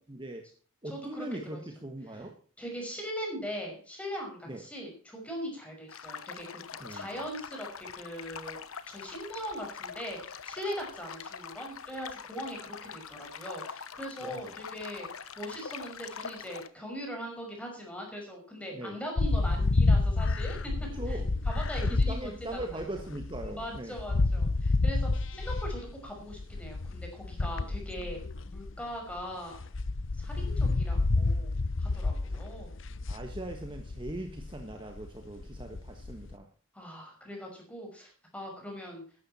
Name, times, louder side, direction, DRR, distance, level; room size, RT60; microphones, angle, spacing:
voice 1, 0.1-0.4 0.8-2.4 4.5-4.6 6.8-7.2 14.2-14.5 18.7-19.0 20.9-21.3 21.8-24.0 27.6-27.8 32.3-32.4 33.1-36.5, right 1 dB, 25° right, 4 dB, 1.5 m, -40 dB
voice 2, 0.8-1.6 2.6-6.6 6.9-8.6 8.9-20.7 21.1-21.2 21.4-22.8 23.4-28.2 28.5-29.6 30.2-32.7 36.7-39.0, equal, 5° left, 0 dB, 5.7 m, -40 dB
sound 1, 5.9-16.7, left 6 dB, 85° left, 1.1 m, -44 dB
sound 2, 19.2-29.2 29.5-36.3, left 3 dB, 65° left, 0.8 m, -29 dB
14.5 x 12.0 x 4.3 m, 0.40 s
head